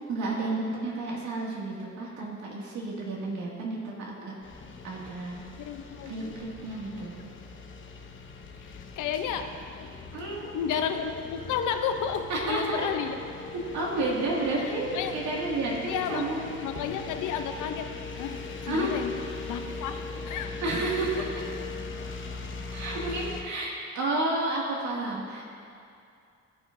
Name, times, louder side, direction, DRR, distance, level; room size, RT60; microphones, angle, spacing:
voice 1, 0.1-4.4 4.8-5.4 6.1-7.1 10.1-10.5 12.3-12.9 13.5-16.4 18.7-19.0 20.6-21.2 22.7-25.4, right 2 dB, 70° right, -3 dB, 2.1 m, -31 dB
sound 1, 4.4-23.4, left 4 dB, 40° left, 0.9 m, -40 dB
voice 2, 5.6-6.4 8.7-9.9 10.5-13.2 14.6-15.1 15.9-16.3 16.6-19.1 19.5-20.5, left 8 dB, 80° left, 7 dB, 0.7 m, -32 dB
17.0 x 5.8 x 2.6 m, 2.4 s
cardioid pair, 90°, 30 cm